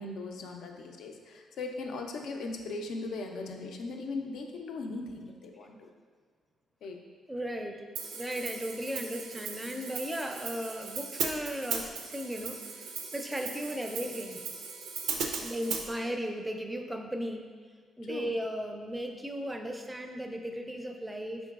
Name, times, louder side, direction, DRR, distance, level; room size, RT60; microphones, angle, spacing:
voice 1, 0.0-5.9 6.8-7.0 18.1-18.3, left 3 dB, 75° left, 3 dB, 0.5 m, -39 dB
voice 2, 7.3-14.4 15.4-17.5 18.0-21.5, equal, 10° right, 4 dB, 0.4 m, -36 dB
Hi-hat, 7.9-15.8, right 5 dB, 90° right, 0.4 m, -37 dB
5.2 x 3.8 x 2.4 m, 1.5 s
cardioid pair, 90°, 0 cm